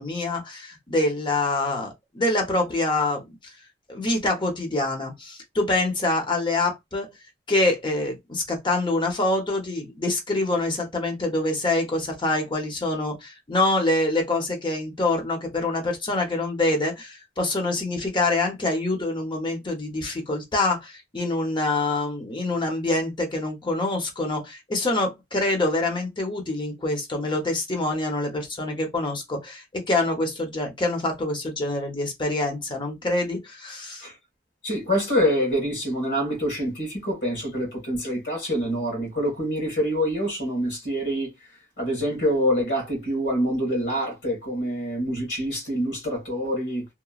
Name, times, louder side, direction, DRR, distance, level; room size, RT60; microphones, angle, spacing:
voice 1, 0.0-3.5 3.9-7.1 7.5-34.0, left 2 dB, 25° left, 0.8 m, -25 dB
voice 2, 34.6-41.3 41.8-46.9, equal, 65° left, 1.5 m, -26 dB
2.9 x 2.1 x 2.3 m
head